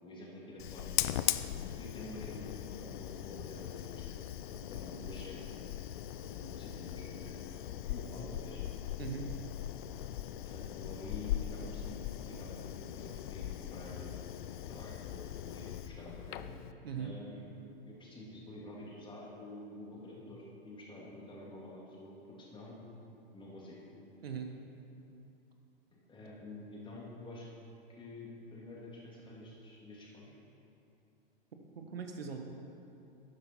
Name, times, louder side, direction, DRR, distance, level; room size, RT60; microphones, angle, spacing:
voice 1, 0.0-0.9 1.8-4.2 4.5-5.4 6.1-7.4 7.8-8.6 10.5-14.2 14.7-16.5 17.0-17.6 17.9-22.7 23.3-23.8 25.9-27.5 27.9-30.3, left 1 dB, 15° left, -4 dB, 2.6 m, -48 dB
Fire, 0.6-16.7, left 12 dB, 55° left, 0.5 m, -40 dB
voice 2, 16.8-17.1 24.2-24.5 31.7-32.4, right 6 dB, 80° right, 4 dB, 1.2 m, -40 dB
12.0 x 8.8 x 4.4 m, 2.7 s
hypercardioid pair, 105°, 30 cm